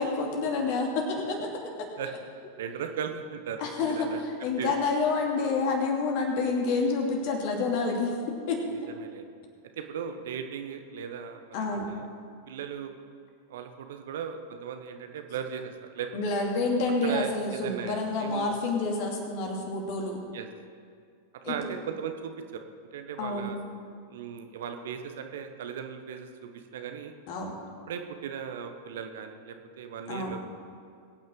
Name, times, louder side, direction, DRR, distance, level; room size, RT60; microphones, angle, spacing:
voice 1, 0.0-1.5 1.8-1.9 3.6-8.1 8.5-8.7 11.5-11.9 16.1-20.2 21.4-21.7 23.2-23.5 27.3-27.5 30.1-30.3, left 3 dB, 45° left, 0 dB, 2.6 m, -28 dB
voice 2, 2.6-4.2 4.6-4.7 8.9-9.3 9.8-12.1 12.5-12.9 13.5-16.3 17.0-18.5 20.3-20.5 21.5-22.6 22.9-23.6 24.1-26.3 26.7-27.1 27.9-30.5, right 7 dB, 60° right, 6 dB, 1.1 m, -37 dB
22.0 x 9.3 x 3.8 m, 2.2 s
figure-of-eight pair, 90°, 0 cm